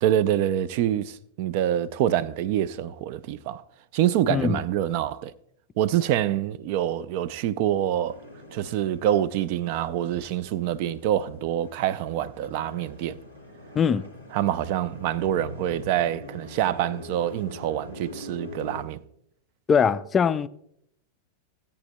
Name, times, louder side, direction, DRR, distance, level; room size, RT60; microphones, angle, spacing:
voice 1, 0.0-3.6 3.9-5.3 5.8-8.2 8.5-13.2 14.3-19.0, right 11 dB, 45° right, 0.4 m, -26 dB
voice 2, 4.3-4.6 13.7-14.1 19.7-20.5, left 6 dB, 20° left, 0.4 m, -22 dB
sound 1, 8.1-18.8, equal, 85° right, 3.0 m, -44 dB
17.0 x 8.6 x 2.2 m
figure-of-eight pair, 90°, 0 cm